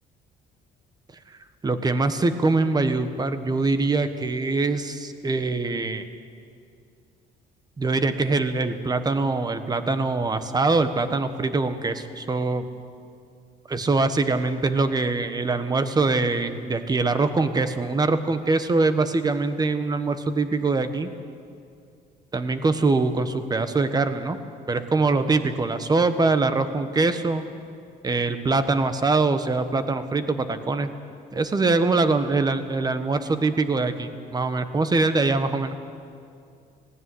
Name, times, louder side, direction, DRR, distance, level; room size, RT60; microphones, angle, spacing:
voice 1, 1.6-6.0 7.8-12.6 13.7-21.1 22.3-24.4 24.7-27.4 28.0-30.9 31.3-35.7, right 3 dB, 25° right, 10 dB, 1.4 m, -23 dB
18.5 x 16.0 x 9.8 m, 2.4 s
cardioid pair, 110°, 17 cm